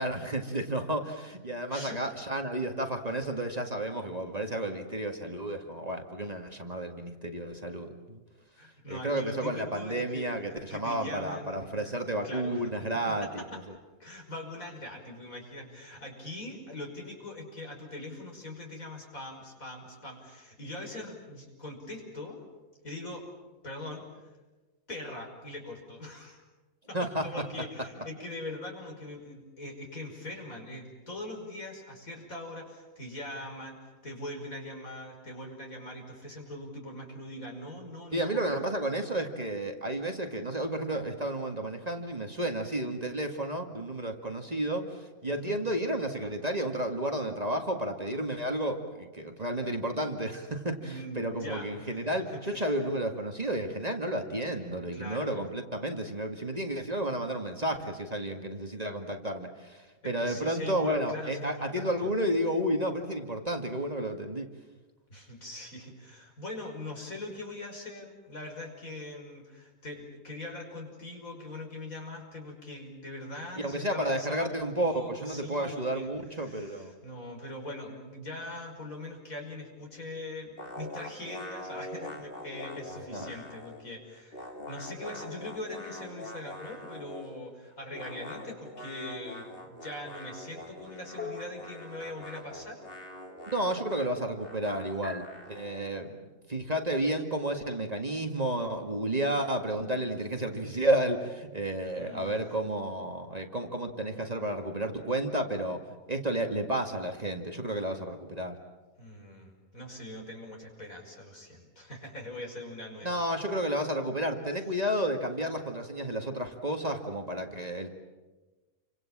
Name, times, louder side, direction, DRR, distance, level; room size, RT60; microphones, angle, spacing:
voice 1, 0.0-8.2 8.9-13.8 26.9-27.2 38.1-64.5 73.6-76.9 83.1-83.3 93.5-108.6 113.0-117.9, right 1 dB, 25° right, 4 dB, 2.1 m, -32 dB
voice 2, 8.6-11.9 12.2-12.7 13.1-13.3 14.0-22.4 22.8-23.3 23.6-24.2 24.9-26.4 26.9-38.4 45.3-45.6 50.8-52.0 52.4-52.7 54.9-55.4 60.0-62.1 65.1-92.8 102.0-102.4 109.0-113.5, left 1 dB, 70° left, 1 dB, 6.1 m, -42 dB
sound 1, 80.6-83.9 84.1-87.4 87.9-95.9, left 1 dB, 40° left, 3.2 m, -44 dB
sound 2, 88.8-89.4 91.2-92.5 95.0-95.9, left 3 dB, 5° left, 1.5 m, -44 dB
29.5 x 25.5 x 7.5 m, 1.2 s
omnidirectional pair, 1.5 m